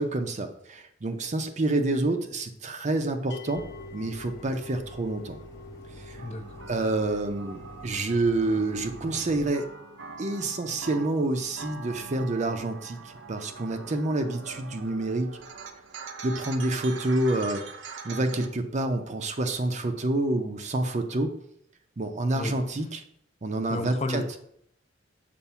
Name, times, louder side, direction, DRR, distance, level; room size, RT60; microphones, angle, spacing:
voice 1, 0.0-3.6 3.9-5.4 6.0-6.2 6.7-9.7 10.2-15.4 16.2-17.6 18.0-21.3 22.0-23.0 23.4-24.2, right 2 dB, 40° right, 7 dB, 0.6 m, -28 dB
sound 1, 3.3-14.5, left 5 dB, 60° left, 0.9 m, -50 dB
sound 2, 3.5-9.4, right 1 dB, 20° left, 0.9 m, -47 dB
voice 2, 6.2-6.6 22.4-22.5 23.7-24.4, left 2 dB, 35° left, 6 dB, 0.6 m, -32 dB
sound 3, 6.2-18.5, right 4 dB, 80° right, 0.6 m, -43 dB
6.8 x 2.6 x 5.6 m, 0.70 s
head